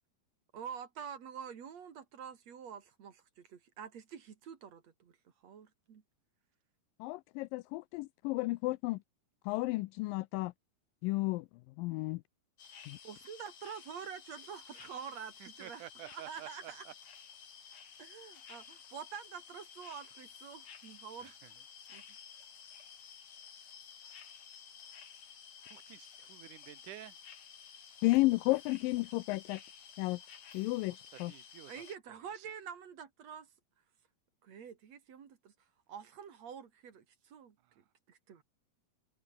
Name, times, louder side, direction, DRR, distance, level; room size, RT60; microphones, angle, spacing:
voice 1, 0.5-5.2 5.4-6.0 13.0-16.9 18.0-21.3 21.9-22.0 28.0-28.3 31.7-33.5 34.4-35.5 35.9-38.4, right 7 dB, 50° right, 3.2 m, -47 dB
voice 2, 7.0-9.0 9.5-10.5 11.0-11.5 11.8-12.2 12.9-13.0 28.0-29.6 30.0-30.2 30.5-31.3, left 21 dB, 85° left, 2.2 m, -32 dB
sound 1, 12.6-32.0, left 7 dB, 60° left, 4.2 m, -53 dB
voice 3, 15.4-16.9 17.7-17.8 21.2-21.5 25.7-27.2 30.8-31.8 32.3-32.5 37.7-37.8, right 14 dB, 70° right, 2.5 m, -51 dB
omnidirectional pair, 4.0 m